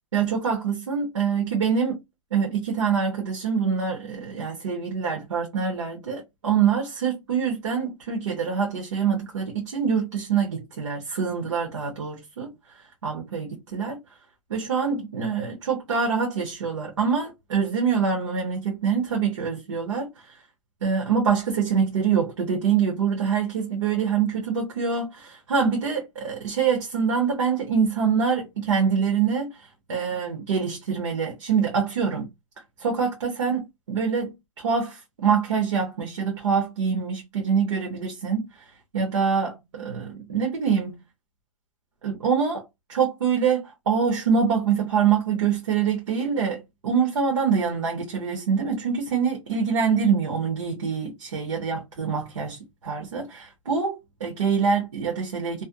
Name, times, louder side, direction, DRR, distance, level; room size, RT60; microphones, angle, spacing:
voice 1, 0.1-2.0 2.3-12.5 13.0-14.0 14.5-20.1 20.8-29.5 29.9-32.3 32.8-38.5 38.9-41.0 42.0-42.6 42.9-55.6, right 6 dB, 60° right, 0.8 m, -25 dB
2.4 x 2.0 x 2.5 m
hypercardioid pair, 175°, 17 cm